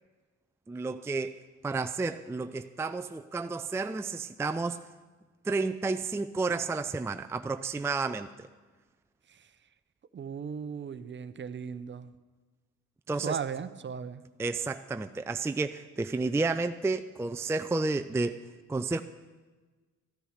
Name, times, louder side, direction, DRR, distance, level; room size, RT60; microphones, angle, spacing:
voice 1, 0.7-1.4 1.6-4.8 5.4-8.5 13.1-13.4 14.4-18.4 18.7-19.0, right 3 dB, 10° right, 8 dB, 0.4 m, -31 dB
voice 2, 10.1-12.1 13.2-14.2, right 7 dB, 40° right, 13 dB, 0.7 m, -37 dB
14.0 x 9.9 x 6.5 m, 1.3 s
cardioid pair, 90°, 30 cm